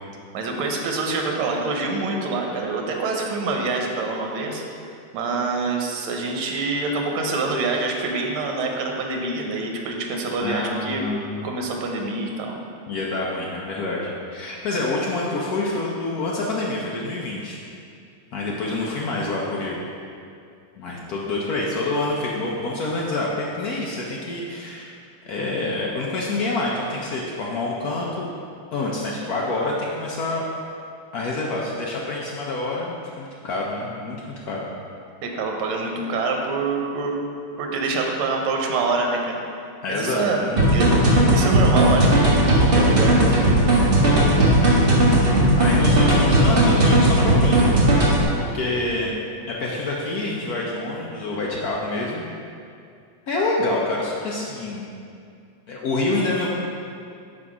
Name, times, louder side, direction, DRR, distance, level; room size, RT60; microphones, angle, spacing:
voice 1, 0.3-4.6 5.1-11.0 11.4-12.6 35.2-37.1 37.6-39.4 39.9-40.9 41.3-43.5, right 3 dB, 80° right, 1 dB, 1.6 m, -26 dB
voice 2, 10.4-11.4 12.9-17.6 18.3-19.8 20.8-24.9 25.3-28.3 28.7-30.4 31.1-34.2 34.5-34.7 39.8-40.7 41.9-42.1 44.0-44.7 45.1-45.2 45.6-49.1 49.5-52.3 53.3-54.8 55.7-56.5, left 2 dB, 75° left, -3 dB, 0.8 m, -27 dB
sound 1, 40.6-48.2, right 1 dB, 35° right, 1.1 m, -17 dB
5.6 x 5.0 x 4.8 m, 2.4 s
omnidirectional pair, 2.3 m